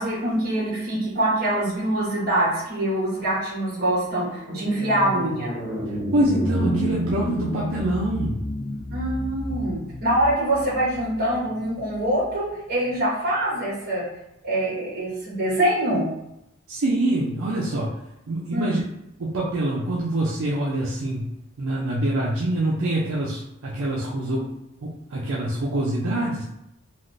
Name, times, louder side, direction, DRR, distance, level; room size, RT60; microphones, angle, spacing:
voice 1, 0.0-5.5 8.9-14.1 14.4-16.0 18.5-18.8, right 1 dB, 45° right, -5 dB, 1.3 m, -24 dB
sound 1, 2.8-12.3, equal, 50° left, 0.7 m, -31 dB
voice 2, 5.9-8.4 16.7-17.9 18.3-18.8 19.2-21.3 21.6-24.5 24.8-26.4, right 1 dB, 70° right, -5 dB, 0.5 m, -25 dB
3.3 x 2.4 x 2.5 m, 0.83 s
head